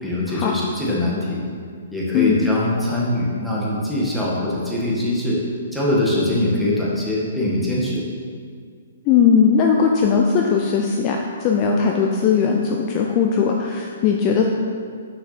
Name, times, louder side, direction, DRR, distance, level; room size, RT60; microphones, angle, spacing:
voice 1, 0.0-1.4 1.9-5.4 5.7-8.0, left 1 dB, ahead, -7 dB, 1.5 m, -22 dB
voice 2, 9.1-14.5, left 6 dB, 30° left, 0 dB, 0.5 m, -18 dB
6.4 x 5.7 x 4.3 m, 2.1 s
hypercardioid pair, 150°, 0 cm